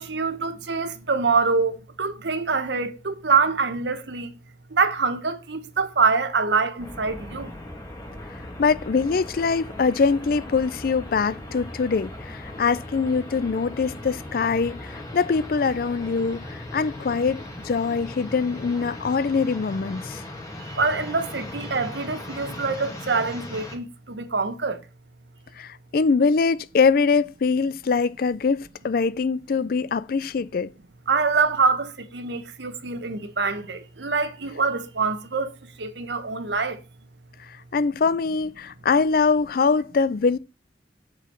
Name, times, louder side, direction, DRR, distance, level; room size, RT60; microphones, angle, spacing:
voice 1, 0.0-4.3 4.7-7.5 20.7-24.8 31.1-35.5 35.8-36.8, right 4 dB, 75° right, 1.0 m, -25 dB
sound 1, 6.8-23.8, left 1 dB, 20° left, 1.7 m, -38 dB
voice 2, 8.6-16.4 16.7-20.2 25.6-30.7 37.7-40.4, left 5 dB, 55° left, 0.4 m, -23 dB
7.3 x 7.0 x 4.4 m
head